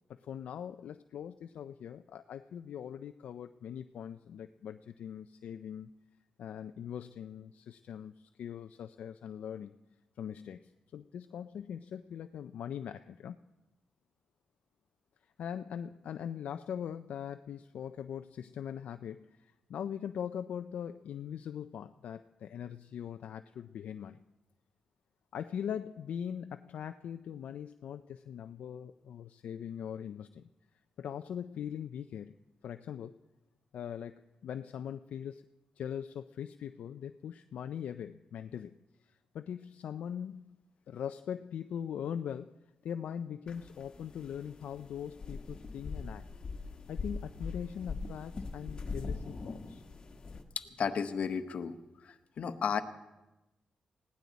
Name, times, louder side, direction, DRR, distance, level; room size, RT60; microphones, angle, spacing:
voice 1, 0.1-5.9 6.4-9.7 10.2-13.4 15.4-24.2 25.3-30.5 31.0-32.3 32.6-33.1 33.7-35.4 35.8-38.8 39.0-40.6 40.9-42.5 42.8-46.3 46.9-49.8, left 8 dB, 80° left, 8 dB, 0.4 m, -41 dB
sound 1, 43.5-50.4, left 4 dB, 40° left, 1.6 m, -42 dB
voice 2, 50.6-51.7 52.0-52.8, left 6 dB, 65° left, 9 dB, 1.0 m, -33 dB
20.0 x 16.5 x 4.1 m, 1.0 s
cardioid pair, 105°, 2 cm